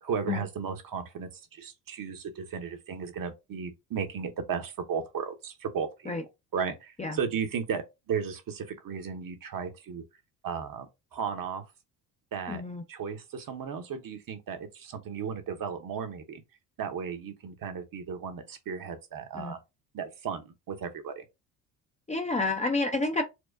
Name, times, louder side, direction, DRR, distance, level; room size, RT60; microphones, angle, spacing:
voice 1, 0.0-10.0 10.4-11.6 12.3-12.6 12.9-16.4 16.8-19.6 19.9-21.2, right 6 dB, 45° right, 1.0 m, -35 dB
voice 2, 12.5-12.8 19.4-19.6 22.1-23.2, left 3 dB, 15° left, 0.6 m, -29 dB
4.5 x 2.1 x 2.6 m
hypercardioid pair, 65°, 46 cm